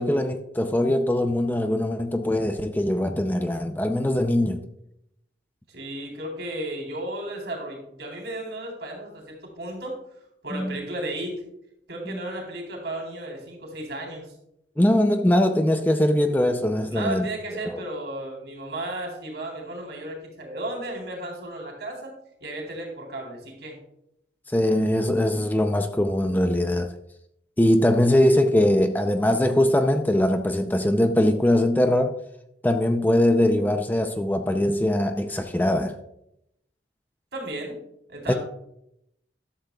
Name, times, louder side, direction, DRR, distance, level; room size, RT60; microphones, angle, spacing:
voice 1, 0.0-4.6 10.5-10.8 12.1-12.2 14.8-17.3 17.6-17.8 24.5-26.9 27.6-32.2 32.6-36.0 38.3-38.4, left 1 dB, 10° left, 0.5 m, -22 dB
voice 2, 5.7-10.0 10.4-11.4 11.9-14.3 16.9-22.1 22.4-23.8 37.3-37.8 38.1-38.4, right 1 dB, 70° right, 3.8 m, -34 dB
13.5 x 11.5 x 2.3 m
head